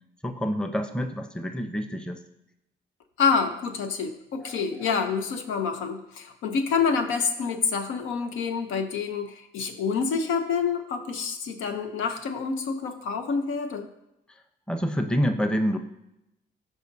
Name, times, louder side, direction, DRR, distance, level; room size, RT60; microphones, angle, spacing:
voice 1, 0.2-2.2 4.4-4.5 14.7-15.8, equal, 5° left, 7 dB, 0.7 m, -27 dB
voice 2, 3.2-13.9, left 5 dB, 85° left, 6 dB, 0.8 m, -27 dB
14.0 x 5.1 x 2.7 m, 0.87 s
cardioid pair, 90°, 20 cm